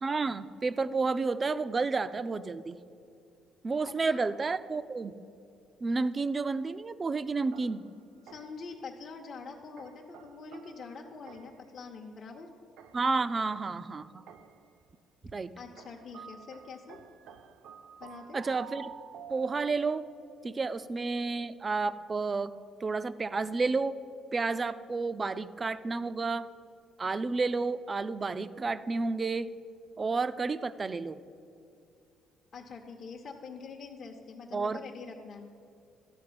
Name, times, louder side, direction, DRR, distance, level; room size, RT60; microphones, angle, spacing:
voice 1, 0.0-2.8 3.6-5.2 5.8-7.8 12.9-14.2 15.3-15.5 18.3-18.9 19.3-20.0 20.4-22.5 22.8-24.0 24.3-26.5 27.0-29.5 30.0-31.2 34.5-34.8, right 4 dB, 25° right, 14 dB, 0.4 m, -31 dB
voice 2, 3.8-4.4 8.2-12.5 15.6-17.0 18.0-18.4 32.5-35.5, left 4 dB, 45° left, 1 dB, 0.8 m, -45 dB
sound 1, 7.5-8.7 9.8-11.7 12.8-14.7 15.8-20.1, right 8 dB, 75° right, 0.6 m, -51 dB
12.5 x 4.9 x 8.5 m, 2.5 s
cardioid pair, 125°, 0 cm